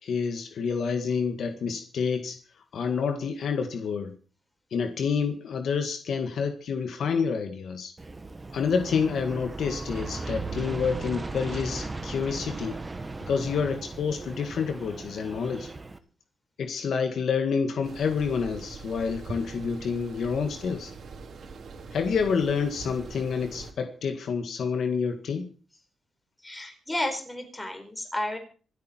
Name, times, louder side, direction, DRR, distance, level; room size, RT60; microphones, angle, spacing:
voice 1, 0.0-2.4 2.7-4.1 4.7-7.9 8.5-12.8 13.3-15.7 16.6-20.9 21.9-25.5, left 6 dB, 65° left, 6 dB, 1.8 m, -28 dB
Aircraft, 8.0-16.0, right 3 dB, 20° right, 1.3 m, -37 dB
sound 1, 17.8-23.7, right 4 dB, 60° right, 3.1 m, -42 dB
voice 2, 26.4-28.4, left 1 dB, 10° left, 4 dB, 4.5 m, -32 dB
26.0 x 8.8 x 4.5 m, 0.40 s
wide cardioid pair, 135°, 0 cm